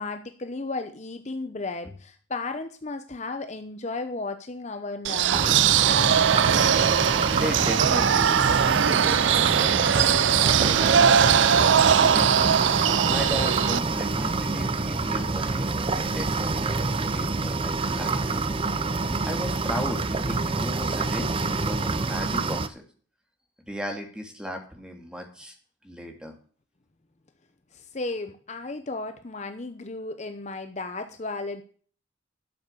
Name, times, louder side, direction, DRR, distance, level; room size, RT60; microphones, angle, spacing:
voice 1, 0.0-5.8 27.7-31.6, left 3 dB, 35° left, 8 dB, 0.8 m, -34 dB
sound 1, 5.0-13.8, right 8 dB, 70° right, 0.5 m, -21 dB
sound 2, 5.3-22.7, right 3 dB, 30° right, 0.7 m, -27 dB
voice 2, 6.9-8.5 8.8-12.6 13.1-18.4 19.3-22.8 23.7-25.5 25.8-26.3, equal, 5° right, 3 dB, 2.4 m, -36 dB
12.0 x 7.2 x 6.7 m, 0.43 s
head